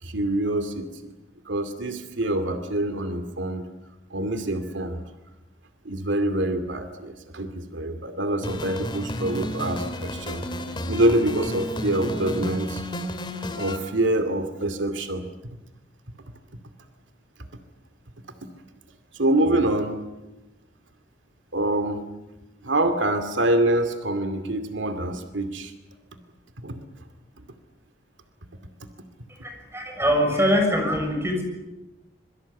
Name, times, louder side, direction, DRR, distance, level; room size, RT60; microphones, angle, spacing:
voice 1, 0.0-1.1 1.5-3.6 4.1-5.0 5.8-10.4 10.9-12.9 13.6-15.3 19.1-20.0 21.5-22.0 22.6-25.7 26.6-26.8, right 1 dB, 90° right, 8 dB, 2.5 m, -25 dB
sound 1, 8.4-13.8, left 1 dB, 25° left, 2.7 m, -32 dB
voice 2, 29.3-31.4, equal, 15° right, 3 dB, 6.8 m, -23 dB
26.0 x 23.5 x 8.5 m, 1.0 s
head